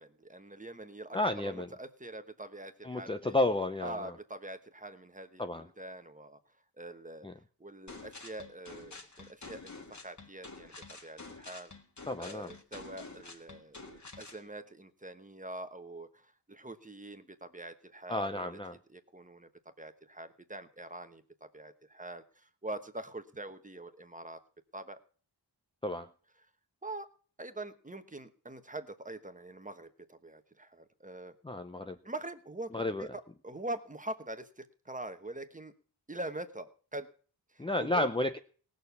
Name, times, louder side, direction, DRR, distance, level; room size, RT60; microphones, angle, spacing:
voice 1, 0.0-1.2 1.4-3.4 3.8-5.4 5.8-6.4 6.7-7.3 7.6-9.7 10.0-11.7 12.2-18.6 18.9-19.5 19.8-24.4 24.7-25.0 26.8-27.1 27.4-31.3 32.0-35.7 36.1-37.1 37.5-38.1, right 2 dB, 20° right, 9 dB, 1.1 m, -44 dB
voice 2, 1.1-1.7 2.8-4.1 5.4-5.7 7.2-7.3 12.1-12.5 18.1-18.8 25.8-26.1 31.4-32.0 32.7-33.1 37.6-38.4, left 2 dB, 10° left, 7 dB, 0.5 m, -32 dB
sound 1, 7.9-14.4, left 3 dB, 40° left, 1.7 m, -49 dB
18.0 x 6.5 x 6.9 m, 0.43 s
wide cardioid pair, 100°, 43 cm